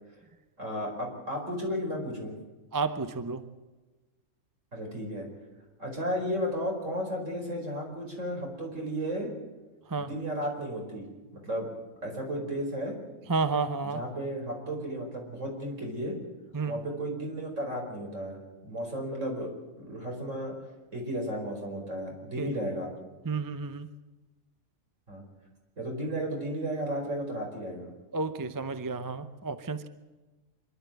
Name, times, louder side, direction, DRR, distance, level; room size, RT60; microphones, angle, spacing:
voice 1, 0.6-2.3 4.7-5.3 5.8-9.3 10.0-11.0 11.4-11.7 12.0-13.0 13.9-16.1 16.7-19.5 19.8-20.5 20.9-22.9 25.1-25.2 25.8-27.9, equal, 65° right, 1 dB, 5.3 m, -34 dB
voice 2, 2.7-3.4 9.9-10.1 13.3-14.0 16.5-16.8 22.4-22.5 23.2-23.9 28.1-29.9, right 4 dB, 20° right, 11 dB, 0.7 m, -31 dB
26.0 x 12.0 x 9.2 m, 1.2 s
omnidirectional pair, 1.4 m